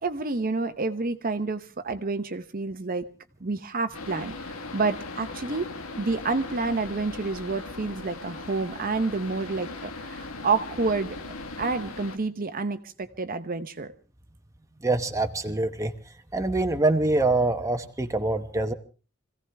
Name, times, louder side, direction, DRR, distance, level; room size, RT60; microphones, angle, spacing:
voice 1, 0.0-3.1 3.4-5.7 6.0-13.9, right 3 dB, 45° right, 9 dB, 0.9 m, -29 dB
sound 1, 3.9-12.2, left 3 dB, 85° left, 1.5 m, -39 dB
voice 2, 14.8-15.9 16.3-18.7, right 2 dB, 15° right, 6 dB, 0.9 m, -25 dB
25.5 x 16.0 x 3.4 m, 0.36 s
head